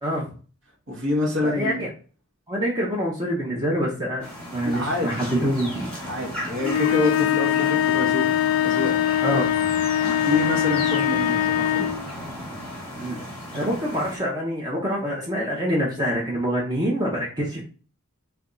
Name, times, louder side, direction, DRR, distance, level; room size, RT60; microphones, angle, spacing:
voice 1, 0.0-0.3 1.4-1.9 2.5-4.2 4.5-5.9 9.2-9.5 13.0-13.2 13.5-17.6, equal, 20° right, -4 dB, 0.7 m, -26 dB
voice 2, 0.9-1.8 4.6-5.3 6.1-8.3 8.6-8.9 9.3-9.4 10.2-11.9, left 1 dB, 55° right, -3 dB, 1.1 m, -27 dB
sound 1, 4.2-14.2, left 1 dB, 5° left, 1.0 m, -35 dB
sound 2, 6.6-12.1, left 11 dB, 70° left, 0.3 m, -22 dB
3.4 x 2.3 x 3.7 m, 0.38 s
head